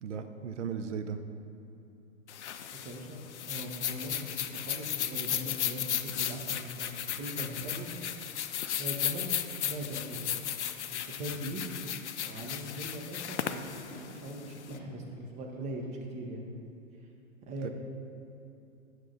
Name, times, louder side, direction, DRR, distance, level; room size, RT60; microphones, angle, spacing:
voice 1, 0.0-1.2 17.6-17.7, right 6 dB, 55° right, 7 dB, 0.7 m, -36 dB
sound 1, 2.3-14.7, left 10 dB, 55° left, 0.5 m, -35 dB
voice 2, 2.7-3.2 3.5-7.9 8.6-9.3 9.6-10.3 10.8-11.7 12.2-16.4 17.5-17.7, right 1 dB, 15° right, 0 dB, 0.8 m, -40 dB
Animal, 10.1-10.2 11.0-11.5 12.3-14.0 14.7-15.9, left 4 dB, 20° left, 1.3 m, -54 dB
8.6 x 6.4 x 4.1 m, 2.7 s
figure-of-eight pair, 110°, 42 cm